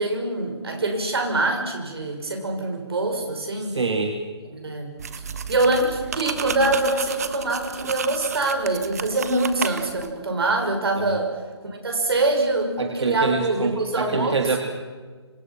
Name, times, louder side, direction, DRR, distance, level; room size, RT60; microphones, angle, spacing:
voice 1, 0.0-3.7 4.5-4.9 5.5-11.3 11.6-14.3, right 2 dB, 60° right, 4 dB, 6.4 m, -24 dB
voice 2, 3.6-4.2 11.0-11.1 12.8-14.6, right 4 dB, 80° right, 4 dB, 2.9 m, -25 dB
sound 1, 5.0-10.1, right 6 dB, 35° right, 1.3 m, -32 dB
26.5 x 26.0 x 6.1 m, 1.5 s
hypercardioid pair, 175°, 14 cm